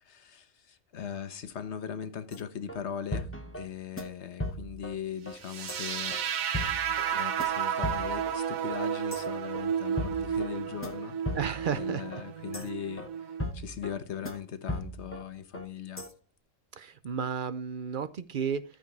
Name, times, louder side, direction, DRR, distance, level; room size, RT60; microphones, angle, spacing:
voice 1, 0.0-3.3 3.6-6.2 7.1-11.4 11.7-16.1, left 8 dB, 55° left, 1.2 m, -39 dB
sound 1, 2.3-2.4 2.7-2.8 3.1-3.7 4.0-4.1 4.4-4.9 5.3-5.4 5.7-5.8 6.1-6.2 6.5-7.1 7.4-7.5 7.8-8.4 8.7-8.8 9.1-9.2 9.5-9.7 10.0-10.5 10.8-10.9 11.3-11.8 12.1-12.2 12.5-12.7 13.0-13.1 13.4-13.9 14.3-14.4 14.7-15.2 15.5-15.7 16.0-16.1, left 1 dB, 10° left, 0.8 m, -36 dB
sound 2, 5.4-13.4, right 8 dB, 80° right, 1.3 m, -32 dB
voice 2, 11.4-12.0 12.6-12.7 16.7-18.6, right 7 dB, 55° right, 0.6 m, -33 dB
13.5 x 5.2 x 4.6 m
omnidirectional pair, 1.4 m